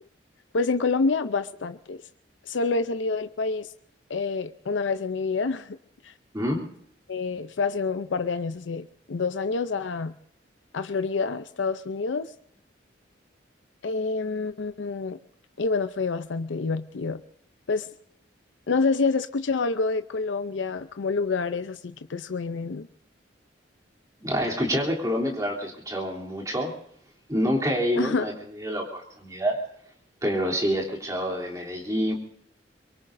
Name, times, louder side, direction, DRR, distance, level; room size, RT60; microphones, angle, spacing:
voice 1, 0.5-2.0 2.5-3.7 4.1-5.8 6.0-6.1 7.1-10.1 10.7-12.3 13.8-15.2 15.6-17.2 17.7-17.9 18.7-22.9 28.0-28.3, left 4 dB, 85° left, 11 dB, 0.6 m, -27 dB
voice 2, 24.2-26.7 27.3-29.6 30.2-32.1, equal, 20° right, -2 dB, 3.1 m, -27 dB
23.5 x 23.0 x 2.6 m, 0.69 s
head